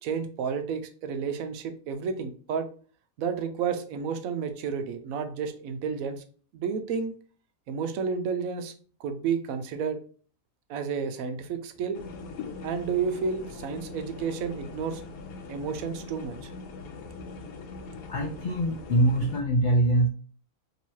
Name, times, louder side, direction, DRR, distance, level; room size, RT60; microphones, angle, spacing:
voice 1, 0.0-2.7 3.2-6.2 6.5-7.1 7.7-8.7 9.0-10.0 10.7-12.0 12.6-15.0 15.5-16.5, right 6 dB, 80° right, 8 dB, 1.0 m, -31 dB
sound 1, 11.9-19.4, left 4 dB, 90° left, 1.1 m, -41 dB
voice 2, 18.1-20.1, right 1 dB, 70° left, 2 dB, 0.4 m, -23 dB
3.0 x 2.9 x 4.5 m, 0.43 s
omnidirectional pair, 1.5 m